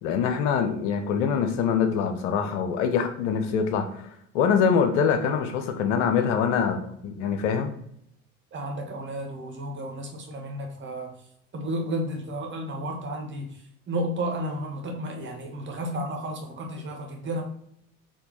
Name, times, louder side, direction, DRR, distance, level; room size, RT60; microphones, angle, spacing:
voice 1, 0.0-3.9 4.3-7.7, left 7 dB, 55° left, 6 dB, 0.7 m, -24 dB
voice 2, 8.5-11.1 11.5-13.5 13.9-17.4, right 1 dB, 25° right, 1 dB, 1.4 m, -32 dB
4.5 x 2.9 x 4.1 m, 0.70 s
figure-of-eight pair, 70°, 43 cm